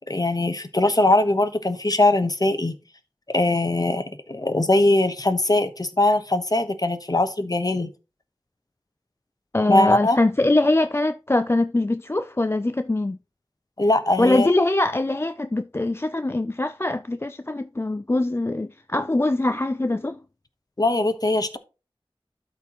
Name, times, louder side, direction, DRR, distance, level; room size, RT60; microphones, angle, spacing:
voice 1, 0.1-2.8 3.3-7.9 9.7-10.2 13.8-14.5 20.8-21.6, left 2 dB, 40° left, 1.0 m, -21 dB
voice 2, 9.5-13.2 14.2-20.2, left 2 dB, 25° left, 0.4 m, -22 dB
12.5 x 4.3 x 2.9 m
wide cardioid pair, 55°, 10 cm